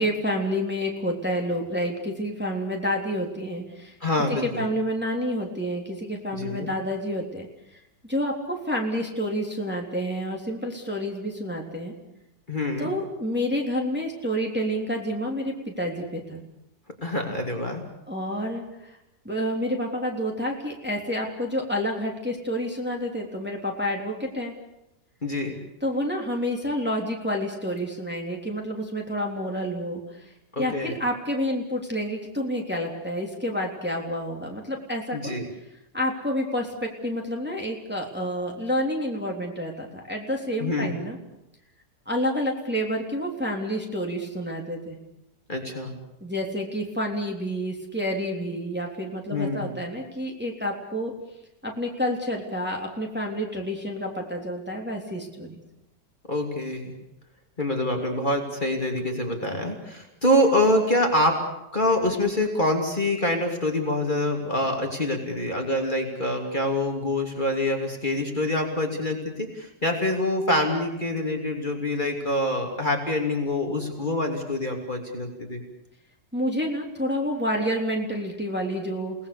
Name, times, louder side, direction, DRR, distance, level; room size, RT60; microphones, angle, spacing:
voice 1, 0.0-4.0 4.3-7.5 8.1-11.9 12.8-16.4 18.1-19.0 19.2-24.5 25.8-30.2 30.6-35.3 35.9-41.2 42.1-45.0 46.2-51.1 51.6-55.5 76.3-79.1, equal, 5° right, 0 dB, 3.3 m, -29 dB
voice 2, 4.0-4.7 6.3-6.7 12.5-12.9 17.0-17.8 25.2-25.6 30.5-31.0 35.1-35.4 40.6-41.0 45.5-46.0 49.3-49.7 56.3-56.9 57.6-61.4 61.7-75.6, left 1 dB, 25° left, 1 dB, 3.1 m, -25 dB
30.0 x 19.0 x 7.0 m, 0.86 s
omnidirectional pair, 1.9 m